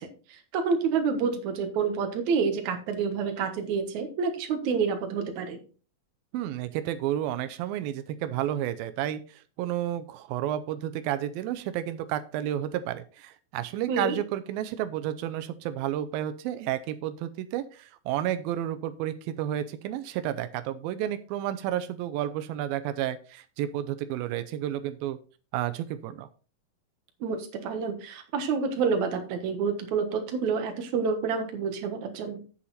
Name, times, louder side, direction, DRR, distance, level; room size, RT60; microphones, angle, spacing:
voice 1, 0.0-5.6 13.9-14.2 27.2-32.4, right 5 dB, 60° right, 6 dB, 2.6 m, -28 dB
voice 2, 6.3-25.2 25.5-26.3, right 12 dB, 90° right, 10 dB, 2.5 m, -31 dB
8.5 x 8.0 x 4.2 m, 0.37 s
omnidirectional pair, 4.1 m